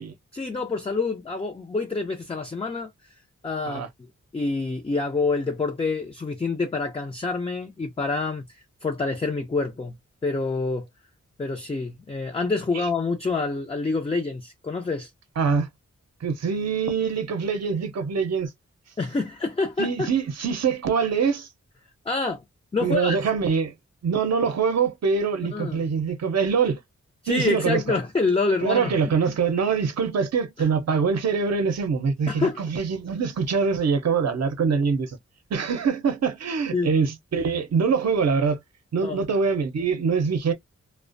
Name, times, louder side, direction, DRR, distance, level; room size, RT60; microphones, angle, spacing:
voice 1, 0.3-2.9 3.4-3.8 4.3-9.9 10.2-10.9 11.4-15.1 19.0-20.1 22.1-22.4 22.7-23.2 25.5-25.8 27.2-28.9 32.3-32.6 36.7-36.9 39.0-39.2, left 3 dB, 20° left, 0.5 m, -27 dB
voice 2, 15.4-15.7 16.2-18.5 19.8-21.5 22.8-23.7 24.0-26.8 27.3-28.0 28.6-35.2 35.5-38.6 38.9-40.5, right 5 dB, 60° right, 0.7 m, -24 dB
2.4 x 2.1 x 2.5 m
wide cardioid pair, 70°, 29 cm